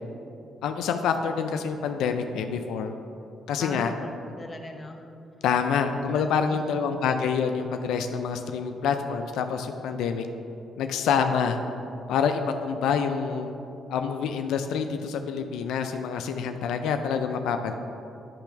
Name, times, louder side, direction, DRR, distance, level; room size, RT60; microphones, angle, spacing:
voice 1, 0.6-2.9 3.5-3.9 5.4-10.3 10.8-11.6 12.1-13.5 13.9-17.8, left 6 dB, 85° left, 6 dB, 0.4 m, -27 dB
voice 2, 3.6-5.1 6.1-7.0, left 2 dB, 25° left, 3 dB, 0.8 m, -40 dB
10.0 x 3.4 x 5.8 m, 2.8 s
cardioid pair, 90°, 0 cm